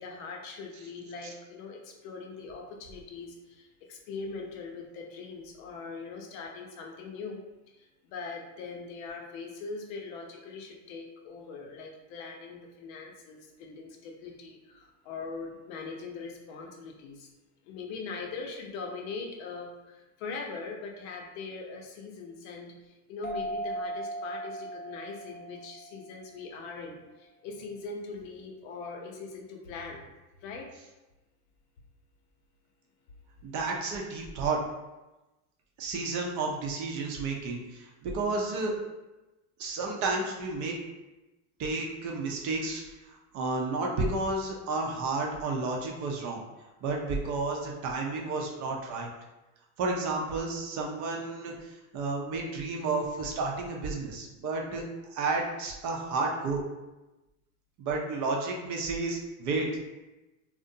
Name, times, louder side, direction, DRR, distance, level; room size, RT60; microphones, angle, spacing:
voice 1, 0.0-7.4 7.8-17.3 17.7-30.1 30.4-30.7, left 4 dB, 70° left, 1 dB, 0.7 m, -41 dB
sound 1, 23.2-26.5, right 1 dB, 25° left, 0.6 m, -38 dB
voice 2, 33.4-34.6 35.8-38.7 39.6-40.8 41.6-46.4 46.8-49.1 49.8-54.8 55.1-56.6 57.8-59.7, right 3 dB, 45° right, 0 dB, 0.6 m, -31 dB
2.4 x 2.1 x 2.6 m, 1.1 s
supercardioid pair, 105°, 43 cm